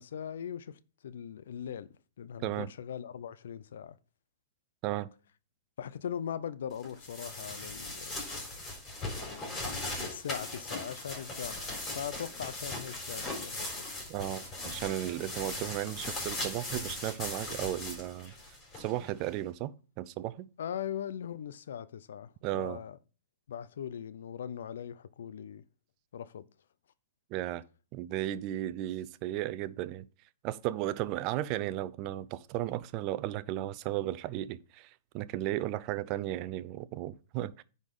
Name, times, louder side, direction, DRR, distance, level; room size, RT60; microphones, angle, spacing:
voice 1, 0.0-4.0 5.8-8.2 9.2-13.9 20.6-23.0 23.5-25.6 26.1-26.5, left 9 dB, 70° left, 0.6 m, -40 dB
sound 1, 6.8-19.3, left 2 dB, 20° left, 4.0 m, -39 dB
voice 2, 14.1-18.3 18.8-20.5 22.4-22.8 27.3-27.6 27.9-30.1 30.4-37.6, right 14 dB, 40° right, 0.6 m, -35 dB
9.8 x 4.1 x 5.4 m
hypercardioid pair, 120°, 0 cm